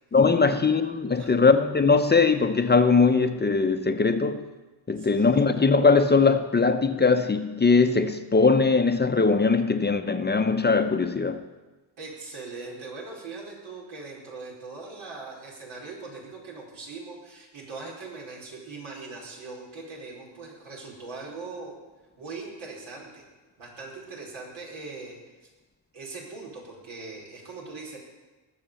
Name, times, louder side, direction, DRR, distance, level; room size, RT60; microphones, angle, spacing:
voice 1, 0.1-4.4 4.9-11.4, left 4 dB, 20° left, 8 dB, 0.6 m, -21 dB
voice 2, 5.0-5.6 12.0-21.7 22.2-23.2 23.6-25.2 25.9-28.0, right 3 dB, 85° right, -3 dB, 4.8 m, -40 dB
20.0 x 6.7 x 6.9 m, 1.2 s
cardioid pair, 100°, 47 cm